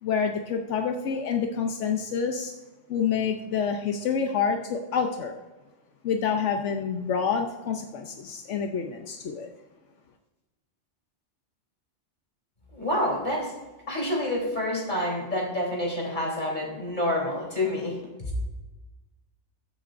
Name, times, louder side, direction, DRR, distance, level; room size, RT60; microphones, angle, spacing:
voice 1, 0.0-2.5 2.9-5.3 6.0-9.5, left 6 dB, 85° left, 4 dB, 1.1 m, -27 dB
voice 2, 12.7-13.5 13.9-18.0, left 1 dB, 40° left, -3 dB, 3.8 m, -28 dB
22.5 x 7.4 x 2.6 m, 1.2 s
omnidirectional pair, 1.2 m